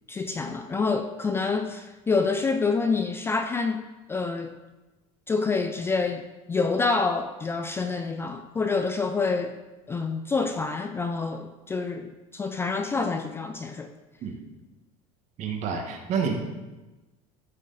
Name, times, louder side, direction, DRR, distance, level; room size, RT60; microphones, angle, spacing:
voice 1, 0.1-3.8 4.1-4.6 5.3-9.5 9.9-13.9, left 4 dB, 15° left, 0.4 m, -27 dB
voice 2, 15.4-16.3, right 6 dB, 45° right, 1.7 m, -28 dB
14.0 x 6.4 x 4.1 m
cardioid pair, 145°, 17 cm